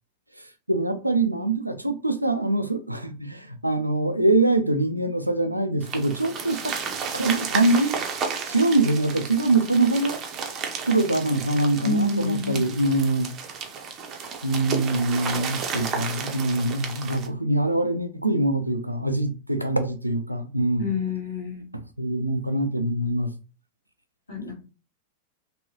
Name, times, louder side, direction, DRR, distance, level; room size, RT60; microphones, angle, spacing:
voice 1, 0.7-6.7 7.1-8.0 8.5-10.2 10.8-13.3 14.4-20.9 22.0-23.3, right 2 dB, 85° right, 0.4 m, -24 dB
sound 1, 5.8-17.3, right 5 dB, 30° right, 0.7 m, -33 dB
voice 2, 11.8-12.6 20.8-21.6 24.3-24.5, left 4 dB, 75° left, 1.4 m, -27 dB
3.0 x 2.9 x 2.9 m
figure-of-eight pair, 90°, 0 cm